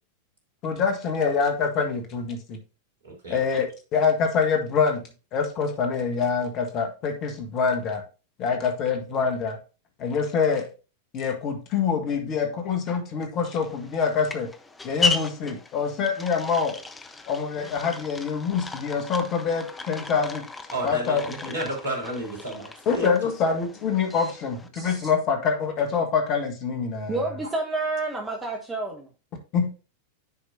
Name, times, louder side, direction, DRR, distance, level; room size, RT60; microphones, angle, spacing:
voice 1, 0.6-2.6 3.3-5.0 5.3-8.0 8.4-9.6 10.0-10.7 11.1-14.5 14.8-16.7 17.3-20.4 20.8-21.5 22.9-27.3 29.5-29.7, left 5 dB, 35° left, 4 dB, 1.6 m, -25 dB
voice 2, 3.0-3.4 20.7-23.3, right 1 dB, 65° right, 1 dB, 3.1 m, -31 dB
sound 1, 13.4-24.7, left 3 dB, 10° left, 0.7 m, -35 dB
voice 3, 27.1-29.1, right 2 dB, 15° right, 1 dB, 1.2 m, -29 dB
9.8 x 5.1 x 2.7 m, 0.33 s
figure-of-eight pair, 90°, 0 cm